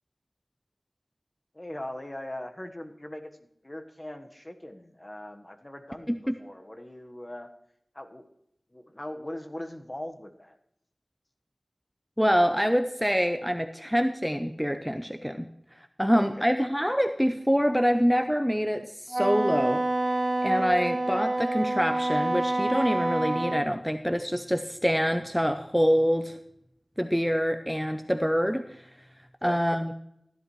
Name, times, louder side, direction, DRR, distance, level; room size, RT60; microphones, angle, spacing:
voice 1, 1.5-7.5 7.9-8.3 8.7-10.6 16.1-16.5 29.4-29.6, left 1 dB, 30° left, 6 dB, 1.3 m, -40 dB
voice 2, 12.2-15.5 16.0-19.8 20.4-26.4 27.0-28.6 29.4-29.9, equal, ahead, 8 dB, 0.6 m, -25 dB
Wind instrument woodwind instrument, 19.1-23.7, right 2 dB, 45° right, 0.4 m, -27 dB
15.0 x 11.0 x 3.1 m, 0.77 s
wide cardioid pair, 40°, 0 cm